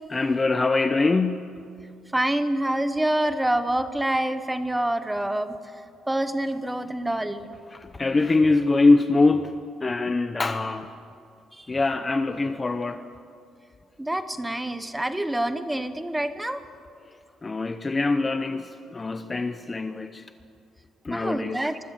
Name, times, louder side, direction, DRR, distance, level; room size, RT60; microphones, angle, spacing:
voice 1, 0.1-1.6 7.7-10.9 11.7-13.1 17.4-20.3 21.0-21.6, left 3 dB, 15° left, 0.7 m, -23 dB
voice 2, 2.1-5.6 6.1-7.4 11.5-11.7 14.0-16.6 21.1-21.8, right 1 dB, 5° right, 1.0 m, -26 dB
24.5 x 24.0 x 7.5 m
cardioid pair, 170°, 0 cm